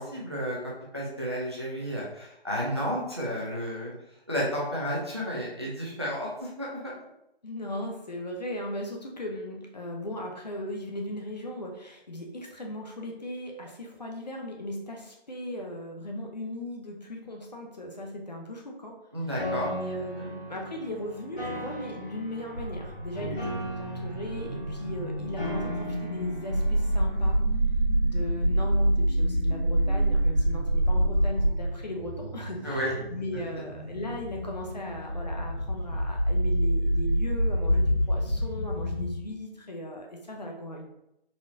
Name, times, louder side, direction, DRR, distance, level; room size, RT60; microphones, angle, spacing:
voice 1, 0.0-3.9 4.3-6.9 19.1-19.7 20.1-20.2 23.1-23.4 32.6-32.9, equal, 25° right, -4 dB, 0.5 m, -32 dB
voice 2, 7.4-18.9 19.7-23.5 23.8-27.4 28.0-40.8, left 1 dB, 45° left, 0 dB, 0.6 m, -37 dB
Piano, 19.4-27.3, equal, 5° left, 0.8 m, -38 dB
sound 1, 22.5-39.1, right 1 dB, 50° right, 1.3 m, -27 dB
4.0 x 2.9 x 2.5 m, 0.81 s
figure-of-eight pair, 165°, 31 cm